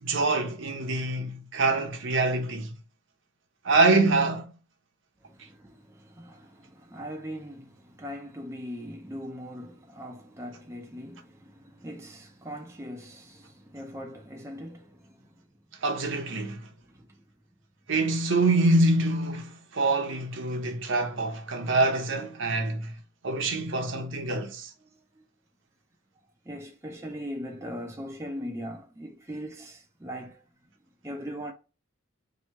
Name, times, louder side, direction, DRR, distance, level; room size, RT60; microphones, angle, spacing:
voice 1, 0.0-2.7 3.6-4.5 15.8-16.7 17.9-24.7, right 2 dB, 60° right, 0.7 m, -25 dB
voice 2, 5.2-15.3 16.9-17.2 24.8-25.2 26.4-30.4 31.0-31.5, equal, 15° right, 0.4 m, -40 dB
2.9 x 2.7 x 4.4 m
head